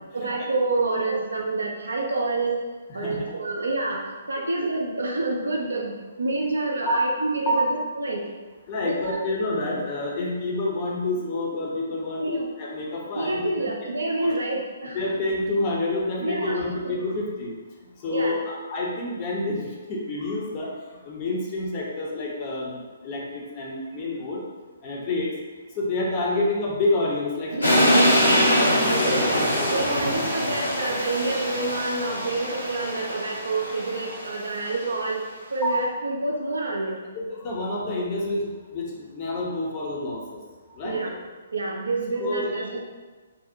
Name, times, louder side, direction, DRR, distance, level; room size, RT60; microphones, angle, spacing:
voice 1, 0.1-2.6 2.9-8.3 8.8-9.3 12.2-12.5 13.1-15.0 16.2-17.0 18.1-18.4 24.3-24.4 27.5-35.2 35.5-36.9 40.3-40.4 40.8-41.1 41.5-42.8, right 2 dB, 65° right, 0 dB, 0.3 m, -28 dB
voice 2, 8.7-13.7 14.2-14.3 14.9-17.5 18.0-18.4 18.7-20.7 21.0-24.4 24.8-25.3 25.8-27.6 29.5-30.0 35.6-35.8 37.1-38.5 38.7-40.4 40.7-41.0 42.2-42.5, left 2 dB, 30° left, -3 dB, 0.5 m, -28 dB
sound 1, 27.6-34.7, equal, 70° left, 0.7 m, -23 dB
2.6 x 2.0 x 2.5 m, 1.3 s
figure-of-eight pair, 130°, 0 cm